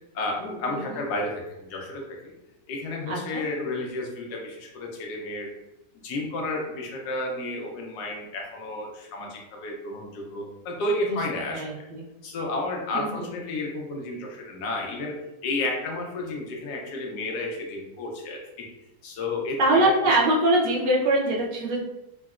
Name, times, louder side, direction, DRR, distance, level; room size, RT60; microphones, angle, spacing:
voice 1, 0.1-2.3 2.7-5.5 6.0-11.6 12.2-15.2 15.4-18.7 19.0-20.1, left 2 dB, 75° left, 0 dB, 1.2 m, -32 dB
voice 2, 0.7-1.0 3.1-3.4 11.1-11.2 11.5-12.0 12.9-13.3 19.6-21.8, right 1 dB, 60° right, -4 dB, 0.5 m, -23 dB
3.8 x 2.1 x 2.3 m, 0.93 s
omnidirectional pair, 1.8 m